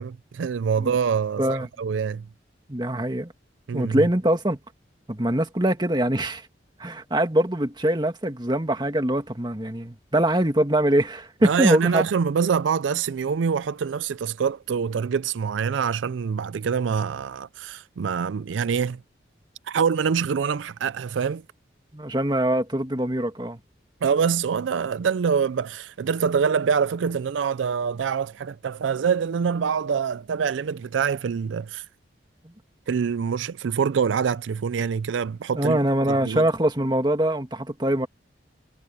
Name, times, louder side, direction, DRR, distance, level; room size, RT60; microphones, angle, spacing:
voice 1, 0.0-2.3 3.7-4.1 11.4-19.0 19.7-21.4 24.0-31.8 32.9-35.8 36.1-36.4, right 6 dB, 90° right, 0.4 m, -25 dB
voice 2, 2.7-3.3 3.7-4.6 5.1-6.4 6.8-12.1 21.9-23.6 35.5-38.1, right 1 dB, 25° right, 1.8 m, -23 dB
head